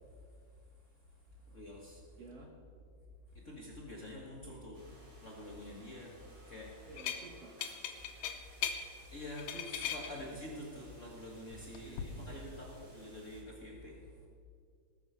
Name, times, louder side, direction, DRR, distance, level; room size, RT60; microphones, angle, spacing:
voice 1, 1.5-2.0 3.3-4.8 5.2-6.1 6.5-6.7 9.1-14.0, left 1 dB, 40° left, -3 dB, 1.0 m, -47 dB
voice 2, 2.2-2.5 4.4-4.6 6.8-7.6 10.3-10.8 11.8-12.7, right 4 dB, 60° right, 1 dB, 1.8 m, -53 dB
sound 1, 4.7-13.4, right 1 dB, 40° right, 4.7 m, -61 dB
sound 2, 7.0-7.2 7.6-8.8 9.2-10.1 11.5-12.0, left 9 dB, 85° left, 2.7 m, -38 dB
18.5 x 7.4 x 5.7 m, 2.2 s
omnidirectional pair, 3.9 m